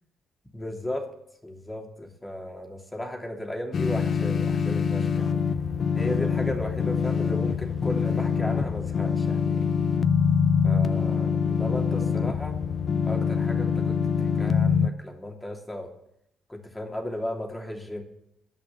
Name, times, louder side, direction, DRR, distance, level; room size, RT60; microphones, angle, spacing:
voice 1, 0.5-1.0 1.4-5.4 6.0-9.7 10.6-12.6 13.1-15.9 16.5-18.0, left 1 dB, 15° left, 1 dB, 3.1 m, -35 dB
sound 1, 3.7-14.9, left 6 dB, 45° left, 0.5 m, -24 dB
15.5 x 5.9 x 9.3 m, 0.78 s
figure-of-eight pair, 45°, 0 cm